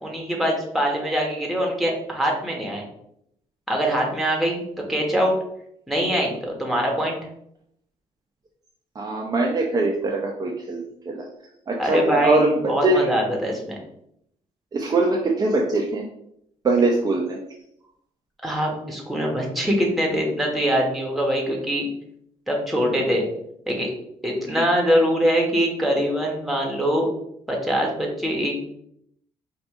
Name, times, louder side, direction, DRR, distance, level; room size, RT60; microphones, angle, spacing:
voice 1, 0.0-2.8 3.7-5.4 5.9-7.2 11.8-13.7 18.4-21.9 22.5-23.2 23.7-23.9 24.2-27.1 27.5-28.6, equal, ahead, -1 dB, 1.2 m, -23 dB
voice 2, 9.0-11.3 11.7-13.1 14.7-16.1 16.6-17.4, right 2 dB, 30° right, -1 dB, 0.6 m, -22 dB
4.9 x 2.6 x 3.7 m, 0.73 s
cardioid pair, 115°, 13 cm